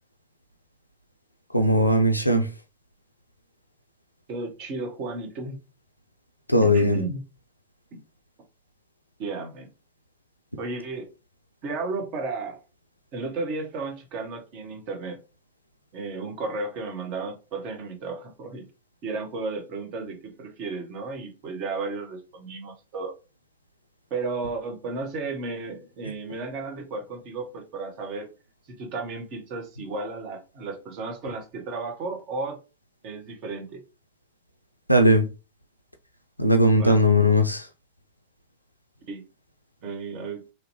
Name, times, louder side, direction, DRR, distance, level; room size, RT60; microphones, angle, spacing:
voice 1, 1.5-2.5 6.5-7.0 34.9-35.3 36.4-37.7, equal, 90° left, 0.4 m, -19 dB
voice 2, 4.3-5.6 6.6-7.2 7.9-8.0 9.2-9.7 10.6-11.1 11.6-12.6 13.1-15.2 15.9-18.7 19.0-23.1 24.1-28.3 28.8-32.6 33.0-33.8 36.7-37.0 39.1-39.2 39.8-40.4, right 3 dB, 40° right, 0.9 m, -33 dB
3.1 x 2.8 x 2.8 m
figure-of-eight pair, 90°, 0 cm